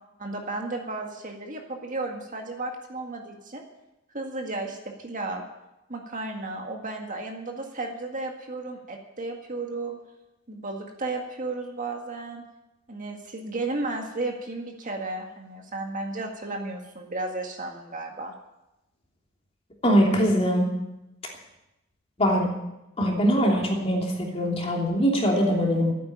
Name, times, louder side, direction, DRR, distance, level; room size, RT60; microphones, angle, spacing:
voice 1, 0.2-3.7 4.1-5.4 5.9-10.0 10.5-12.4 12.9-18.3, right 2 dB, 40° right, 2 dB, 1.9 m, -33 dB
voice 2, 19.8-20.7 22.2-22.5 23.0-25.9, equal, 30° left, -1 dB, 3.1 m, -22 dB
12.5 x 9.4 x 8.9 m, 0.92 s
head